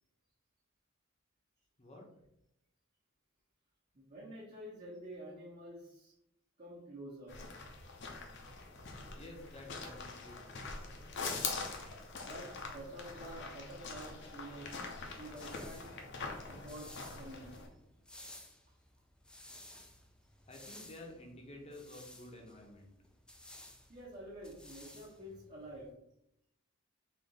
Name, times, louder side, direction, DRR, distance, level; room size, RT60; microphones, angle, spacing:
voice 1, 3.9-6.2 6.6-7.4 12.3-14.7 15.0-15.9 16.4-17.7 23.9-25.9, right 1 dB, 40° right, -7 dB, 1.1 m, -49 dB
sound 1, 7.3-17.7, left 4 dB, 60° left, 0.7 m, -44 dB
voice 2, 9.1-10.7 20.5-22.9, left 1 dB, 30° left, 1 dB, 0.8 m, -51 dB
sound 2, 15.2-25.9, left 1 dB, 5° left, 0.4 m, -56 dB
3.7 x 2.8 x 4.1 m, 0.79 s
head